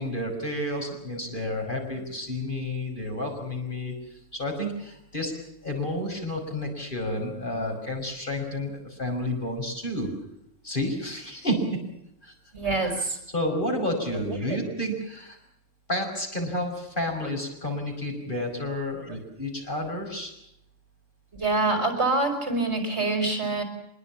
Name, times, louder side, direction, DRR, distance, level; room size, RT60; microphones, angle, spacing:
voice 1, 0.0-5.3 5.6-10.1 10.6-11.8 12.2-12.3 12.8-12.9 13.3-15.4 15.9-20.3, left 1 dB, 40° left, 2 dB, 6.1 m, -30 dB
voice 2, 12.5-13.2 14.3-14.6 21.3-23.6, right 2 dB, 55° right, 6 dB, 5.6 m, -26 dB
24.5 x 22.0 x 7.3 m, 0.80 s
omnidirectional pair, 1.3 m